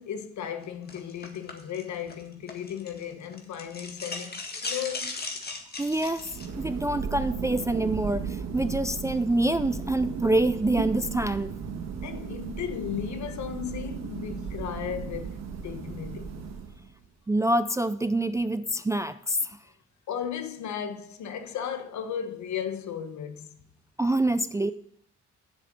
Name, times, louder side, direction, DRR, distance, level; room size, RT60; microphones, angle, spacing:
voice 1, 0.0-5.1 12.0-16.5 20.1-23.6, left 8 dB, 70° left, 1.2 m, -35 dB
sound 1, 0.9-3.0 3.3-6.5, left 3 dB, 30° left, 1.8 m, -37 dB
voice 2, 5.8-6.3 6.6-11.5 17.3-19.6 24.0-24.7, right 1 dB, 10° right, 0.3 m, -26 dB
Thunder, 6.0-17.0, right 6 dB, 60° right, 1.6 m, -35 dB
7.5 x 6.8 x 7.3 m
cardioid pair, 90°, 30 cm